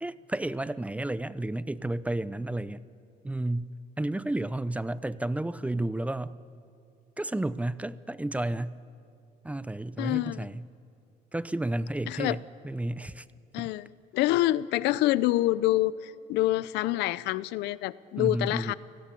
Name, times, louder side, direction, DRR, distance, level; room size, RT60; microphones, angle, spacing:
voice 1, 0.0-2.8 3.2-6.4 7.2-8.8 9.4-10.7 11.3-13.2 13.6-13.7 18.2-18.7, right 1 dB, 10° right, 16 dB, 0.6 m, -32 dB
voice 2, 10.0-10.5 12.1-12.4 13.5-13.9 14.1-18.7, left 16 dB, 90° left, 19 dB, 0.6 m, -26 dB
29.5 x 18.0 x 8.5 m, 2.5 s
cardioid pair, 110°, 17 cm